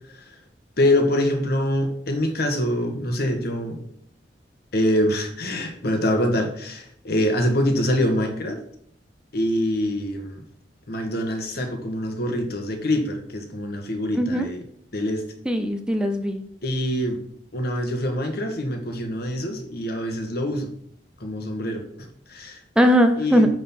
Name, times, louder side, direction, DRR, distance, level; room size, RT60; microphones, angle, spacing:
voice 1, 0.8-3.8 4.7-8.6 9.3-10.4 10.9-14.6 14.9-15.2 16.6-17.2 17.5-20.7 21.2-21.8 22.3-22.6 23.2-23.5, left 1 dB, 60° left, 4 dB, 1.5 m, -24 dB
voice 2, 14.1-14.5 15.4-16.4 22.8-23.5, equal, 5° right, 6 dB, 0.6 m, -19 dB
9.3 x 3.9 x 5.9 m, 0.67 s
head